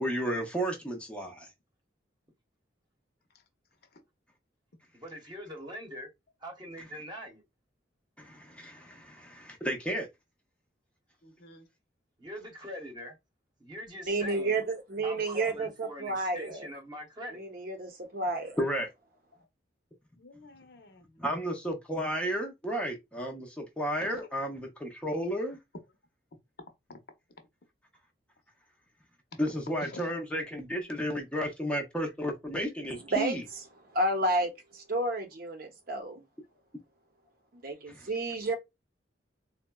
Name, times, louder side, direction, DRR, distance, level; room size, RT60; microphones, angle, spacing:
voice 1, 0.0-1.5 8.2-10.1 18.6-18.9 21.2-25.6 29.4-33.4, equal, 5° left, 0.5 m, -33 dB
voice 2, 4.9-6.1 6.4-7.4 12.2-13.1 13.6-14.6 15.0-17.4, equal, 25° right, 0.8 m, -42 dB
voice 3, 11.2-11.7 19.3-19.5 20.2-21.2 24.0-24.1 29.7-30.1, left 2 dB, 60° left, 0.7 m, -49 dB
voice 4, 14.1-16.7 17.3-18.6 32.9-33.4 33.9-36.2 37.5-38.6, right 2 dB, 55° right, 0.6 m, -31 dB
3.6 x 2.1 x 2.2 m
head